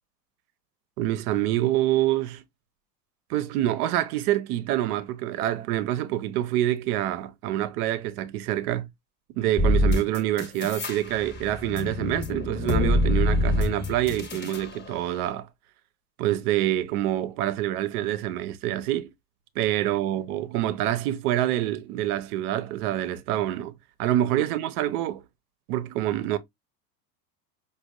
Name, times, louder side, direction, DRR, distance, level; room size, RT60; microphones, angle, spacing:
voice 1, 1.0-2.4 3.3-8.9 9.4-15.5 16.2-19.1 19.6-25.2 25.7-26.4, right 13 dB, 65° right, 0.7 m, -26 dB
sound 1, 9.6-10.9 11.3-14.6, left 1 dB, 20° left, 0.8 m, -24 dB
5.1 x 2.3 x 2.3 m
hypercardioid pair, 90°, 49 cm